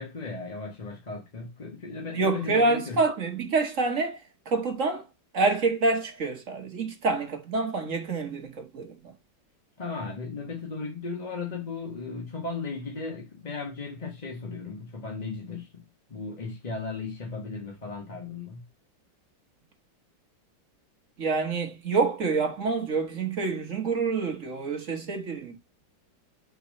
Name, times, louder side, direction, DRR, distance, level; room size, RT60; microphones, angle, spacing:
voice 1, 0.0-3.0 9.8-18.6, left 4 dB, 25° left, 1.0 m, -36 dB
voice 2, 2.1-4.2 4.4-5.0 5.3-9.0 21.2-25.6, right 3 dB, 45° right, 1.5 m, -27 dB
5.4 x 4.5 x 5.1 m
omnidirectional pair, 2.1 m